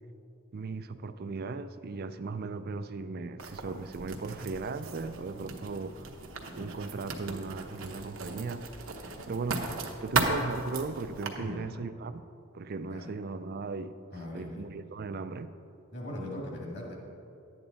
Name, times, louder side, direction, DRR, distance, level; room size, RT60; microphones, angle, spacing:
voice 1, 0.5-6.1 6.5-8.6 9.0-9.7 10.0-12.3 12.5-14.0 14.3-15.5, right 4 dB, 45° right, 11 dB, 0.4 m, -37 dB
Writing, 3.4-11.3, right 3 dB, 70° right, 1.0 m, -36 dB
voice 2, 11.4-11.7 12.9-13.1 14.1-14.7 15.9-16.9, left 1 dB, 50° left, -2 dB, 2.2 m, -40 dB
11.0 x 8.7 x 4.1 m, 2.6 s
head